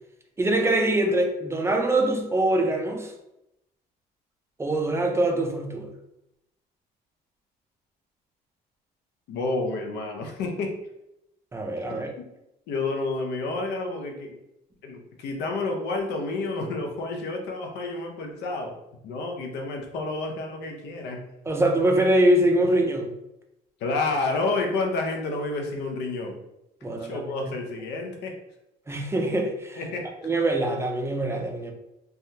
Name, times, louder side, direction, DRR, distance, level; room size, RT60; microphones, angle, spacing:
voice 1, 0.4-3.1 4.6-5.9 11.5-12.1 21.5-23.1 26.8-27.3 28.9-29.8 30.2-31.7, right 1 dB, 15° right, 2 dB, 0.4 m, -23 dB
voice 2, 9.3-10.7 12.2-12.3 12.7-14.4 14.8-18.7 19.0-21.2 23.8-26.4 26.9-28.4 29.8-30.1, left 3 dB, 80° left, 3 dB, 0.6 m, -29 dB
3.4 x 2.2 x 2.7 m, 0.88 s
cardioid pair, 110°, 17 cm